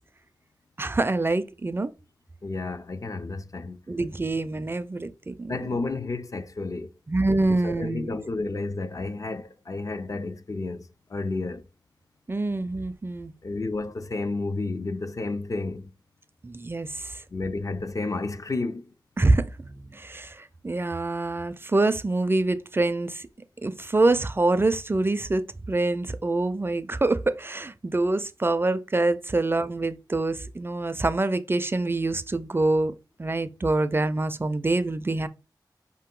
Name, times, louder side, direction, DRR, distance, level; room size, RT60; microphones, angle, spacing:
voice 1, 0.8-1.9 3.9-5.6 7.1-8.2 12.3-13.3 16.4-17.2 19.2-23.3 23.6-32.9 33.2-35.3, right 2 dB, 30° right, 0.4 m, -25 dB
voice 2, 2.4-3.8 5.5-6.9 7.5-11.7 13.4-15.9 17.3-18.9, left 3 dB, 45° left, 0.5 m, -31 dB
5.1 x 2.8 x 3.7 m
wide cardioid pair, 65°, 8 cm